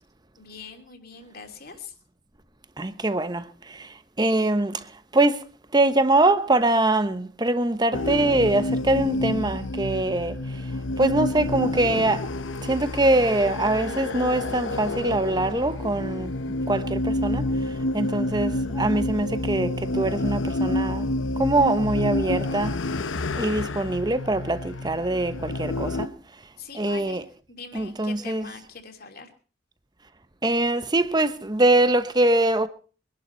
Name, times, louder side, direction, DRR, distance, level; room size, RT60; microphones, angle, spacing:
voice 1, 0.4-1.9 26.6-29.3, left 5 dB, 50° left, 2.8 m, -43 dB
voice 2, 2.8-4.8 5.1-5.4 5.7-10.4 11.0-12.2 12.6-16.3 16.7-17.5 17.9-21.1 21.4-22.8 23.4-26.1 26.7-27.2 27.7-28.4 30.4-32.7, right 2 dB, 20° right, 0.9 m, -23 dB
sound 1, 7.9-26.1, left 2 dB, 75° left, 0.9 m, -28 dB
23.5 x 11.5 x 4.4 m
head